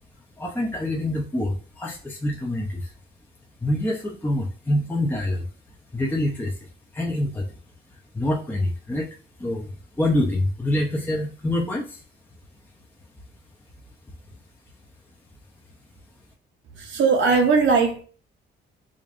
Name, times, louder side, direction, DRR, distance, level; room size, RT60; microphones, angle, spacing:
voice 1, 0.4-2.9 3.6-5.5 5.9-6.6 6.9-7.5 8.1-9.1 9.4-9.7 10.0-12.0, left 1 dB, 10° left, 0.6 m, -25 dB
voice 2, 16.7-18.0, right 4 dB, 70° right, 0.8 m, -19 dB
5.0 x 2.5 x 2.5 m
cardioid pair, 90°, 20 cm